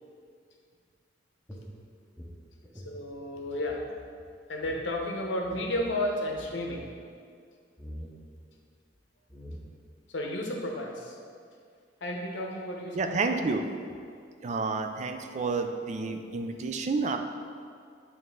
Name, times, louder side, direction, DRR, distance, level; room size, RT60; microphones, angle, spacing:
sound 1, 1.5-3.9 4.2-4.3 4.6-4.9 5.4-5.9 6.3-6.8 7.8-8.2 8.9-9.0 9.3-9.9, equal, 5° left, 0.7 m, -45 dB
voice 1, 2.7-3.8 4.5-6.9 10.1-11.2 12.0-13.4, left 1 dB, 80° left, 1 dB, 0.8 m, -32 dB
voice 2, 12.9-13.6 14.4-17.2, right 4 dB, 40° right, 6 dB, 0.4 m, -30 dB
8.5 x 3.2 x 3.6 m, 2.2 s
head